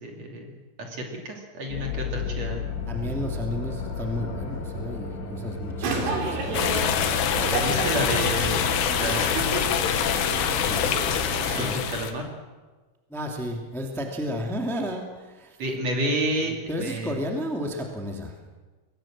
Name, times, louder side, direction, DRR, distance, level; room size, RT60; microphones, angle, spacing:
voice 1, 0.0-2.7 7.5-9.7 11.4-12.3 15.6-17.2, right 1 dB, 40° right, 1 dB, 3.3 m, -30 dB
sound 1, 1.7-8.8, left 4 dB, 60° left, 4.9 m, -34 dB
voice 2, 2.9-6.7 7.7-8.0 10.6-10.9 11.4-11.8 13.1-15.6 16.7-18.3, equal, ahead, 1 dB, 0.6 m, -32 dB
sound 2, 5.8-11.7, right 3 dB, 80° right, 5.9 m, -32 dB
sound 3, 6.5-12.1, left 9 dB, 90° left, 3.9 m, -25 dB
24.5 x 19.0 x 7.5 m, 1.3 s
omnidirectional pair, 5.4 m